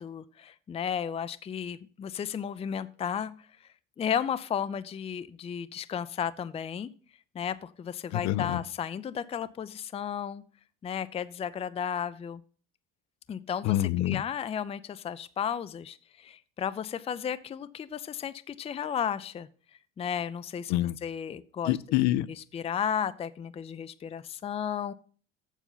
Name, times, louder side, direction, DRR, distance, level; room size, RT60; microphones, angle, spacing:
voice 1, 0.0-3.5 4.0-6.9 7.3-10.4 10.8-12.4 13.3-13.8 14.0-19.5 20.0-20.7 21.0-21.8 22.4-24.9, left 8 dB, 20° left, 0.4 m, -34 dB
voice 2, 8.1-8.6 13.6-14.2 20.7-21.0 21.7-22.3, left 15 dB, 70° left, 0.6 m, -26 dB
7.3 x 6.8 x 5.6 m
supercardioid pair, 105°, 30 cm